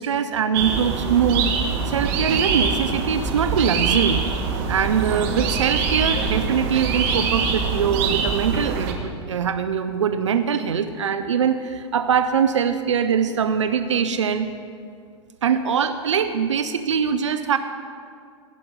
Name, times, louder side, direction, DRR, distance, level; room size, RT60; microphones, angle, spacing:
voice 1, 0.0-1.5 1.9-4.2 4.7-14.5 15.4-17.6, right 7 dB, 90° right, 10 dB, 0.5 m, -22 dB
sound 1, 0.5-8.9, right 5 dB, 50° right, 1.3 m, -24 dB
17.0 x 6.0 x 5.1 m, 2.3 s
hypercardioid pair, 105°, 15 cm